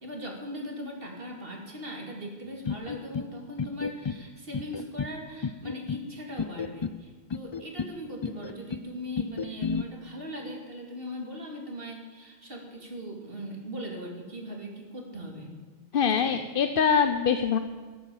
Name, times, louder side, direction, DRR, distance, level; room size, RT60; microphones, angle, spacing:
voice 1, 0.0-15.6 16.0-16.4, equal, 65° right, 0 dB, 3.0 m, -39 dB
sound 1, 2.6-3.3 3.6-4.2 4.5-5.1 5.4-6.0 6.4-7.0 7.3-7.9 8.2-8.8 9.2-9.8, left 5 dB, 40° left, 0.4 m, -32 dB
voice 2, 15.9-17.6, left 7 dB, 65° left, 9 dB, 0.9 m, -23 dB
14.0 x 11.0 x 7.1 m, 1.5 s
omnidirectional pair, 1.0 m